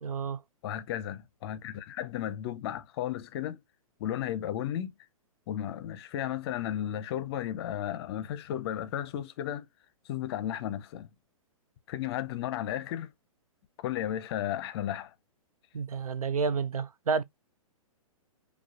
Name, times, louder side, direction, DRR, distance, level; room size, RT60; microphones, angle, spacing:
voice 1, 0.0-0.4 15.7-17.2, right 5 dB, 85° right, 0.5 m, -30 dB
voice 2, 0.6-3.6 4.0-4.9 5.5-9.7 10.1-11.1 11.9-13.1 13.8-15.1, left 11 dB, 45° left, 0.6 m, -34 dB
4.9 x 2.3 x 2.4 m
hypercardioid pair, 120°, 18 cm